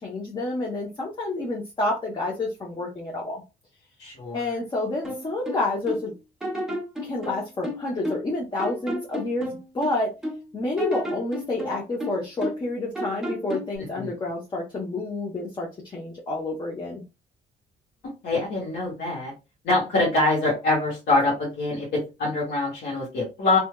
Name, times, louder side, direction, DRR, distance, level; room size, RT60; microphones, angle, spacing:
voice 1, 0.0-3.4 4.3-6.1 7.0-10.1 10.5-17.0, left 2 dB, 25° left, -2 dB, 0.7 m, -29 dB
voice 2, 4.0-4.5 14.0-14.1 18.2-19.3 19.6-23.6, left 2 dB, 85° left, -5 dB, 1.5 m, -24 dB
sound 1, 5.0-6.1 6.4-8.3 8.6-10.4 10.8-12.7 13.0-13.8, equal, 5° right, 0.8 m, -32 dB
3.3 x 2.8 x 2.2 m, 0.28 s
cardioid pair, 150°, 17 cm